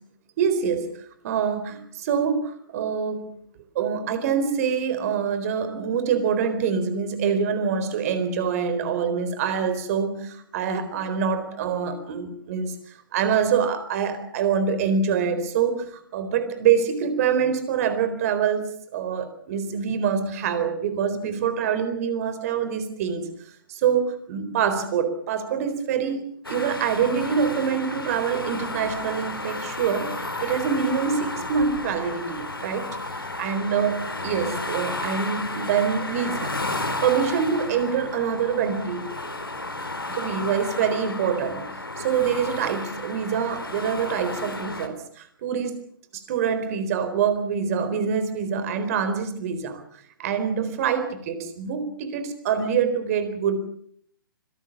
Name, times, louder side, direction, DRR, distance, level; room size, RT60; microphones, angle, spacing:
voice 1, 0.4-0.9 1.2-3.3 3.7-12.7 13.1-18.7 18.9-23.3 23.7-32.9 33.2-39.0 40.1-41.7 42.0-45.8 46.1-49.8 50.2-53.6, right 7 dB, 40° right, 11 dB, 4.2 m, -25 dB
sound 1, 26.4-44.9, left 2 dB, 90° left, 3.6 m, -33 dB
25.5 x 18.5 x 7.3 m, 0.63 s
figure-of-eight pair, 125°, 12 cm